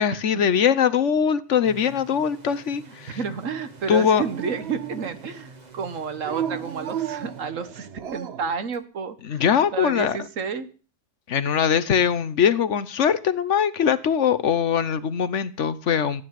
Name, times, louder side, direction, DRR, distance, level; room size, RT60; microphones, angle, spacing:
voice 1, 0.0-3.2 3.9-4.2 9.2-10.2 11.3-16.2, left 8 dB, 65° left, 15 dB, 1.2 m, -22 dB
sound 1, 1.7-8.1, right 2 dB, 35° right, 1.6 m, -46 dB
voice 2, 3.2-9.4 9.7-10.7, right 5 dB, 75° right, 11 dB, 1.6 m, -31 dB
Dog, 3.9-5.4 6.2-8.6, right 9 dB, 55° right, 1.0 m, -34 dB
14.5 x 9.3 x 7.5 m, 0.40 s
omnidirectional pair, 1.3 m